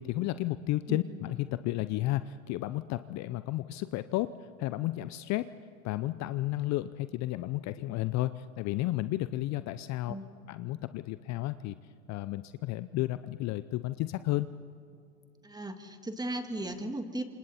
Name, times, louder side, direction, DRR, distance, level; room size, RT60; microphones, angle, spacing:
voice 1, 0.0-4.3 4.6-5.5 5.8-10.1 10.5-11.8 12.1-14.5, left 16 dB, 40° left, 14 dB, 0.7 m, -32 dB
voice 2, 15.4-17.2, right 1 dB, 10° right, 6 dB, 2.0 m, -36 dB
27.5 x 26.0 x 4.3 m, 2.5 s
hypercardioid pair, 95°, 41 cm